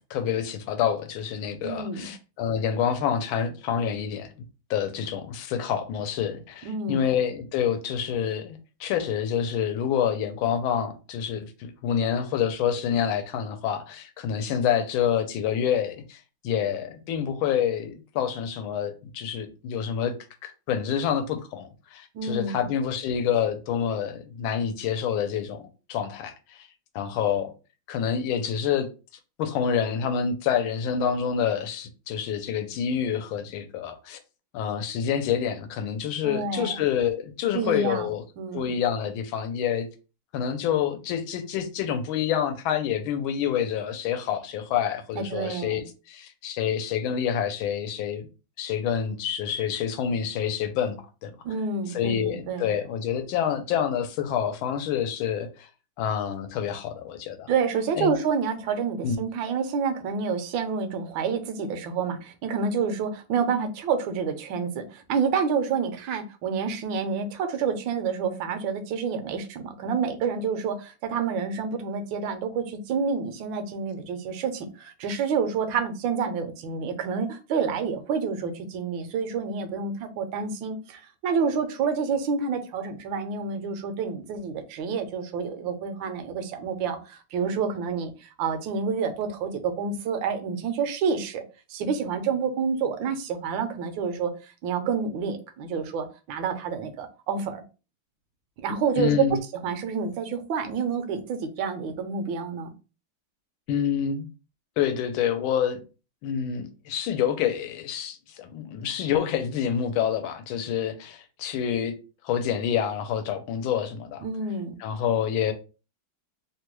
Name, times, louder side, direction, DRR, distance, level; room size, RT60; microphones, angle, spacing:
voice 1, 0.1-4.3 4.7-20.1 20.4-25.6 25.9-26.7 26.9-27.5 27.9-28.9 29.4-34.2 34.5-38.2 38.5-39.9 40.3-48.3 48.6-51.3 51.9-55.7 56.0-57.5 57.9-58.1 59.0-59.2 99.0-99.4 103.7-104.3 104.8-105.8 106.2-112.0 112.2-114.3 114.8-115.5, left 8 dB, 85° left, 1.4 m, -27 dB
voice 2, 1.6-2.1 6.6-7.0 22.1-22.6 36.2-36.8 37.5-38.1 38.4-38.7 45.1-45.8 51.4-52.7 57.5-91.4 91.7-97.6 98.6-99.4 99.6-102.7 114.2-114.7, right 5 dB, 75° right, 1.3 m, -28 dB
3.4 x 2.2 x 3.0 m
omnidirectional pair, 2.2 m